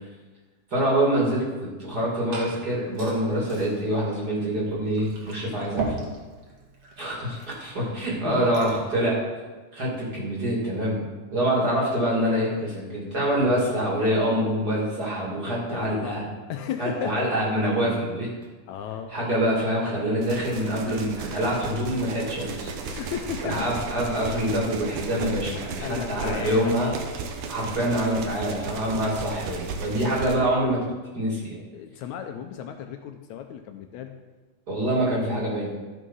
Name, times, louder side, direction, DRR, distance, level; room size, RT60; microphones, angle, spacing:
voice 1, 0.7-5.9 7.0-9.2 9.7-16.2 16.8-18.3 19.1-22.7 23.4-26.9 27.5-30.8 31.1-31.6 34.7-35.7, right 1 dB, 30° right, -5 dB, 2.9 m, -25 dB
Liquid, 1.8-8.9, right 3 dB, 50° right, 2.7 m, -38 dB
voice 2, 8.2-8.5 13.4-13.7 15.7-16.2 16.5-17.3 18.7-19.1 22.8-23.7 25.8-26.7 31.7-34.1, left 8 dB, 75° left, 6 dB, 1.9 m, -34 dB
sound 1, 20.2-30.4, right 4 dB, 90° right, 2.5 m, -35 dB
12.5 x 6.4 x 5.5 m, 1.3 s
omnidirectional pair, 3.5 m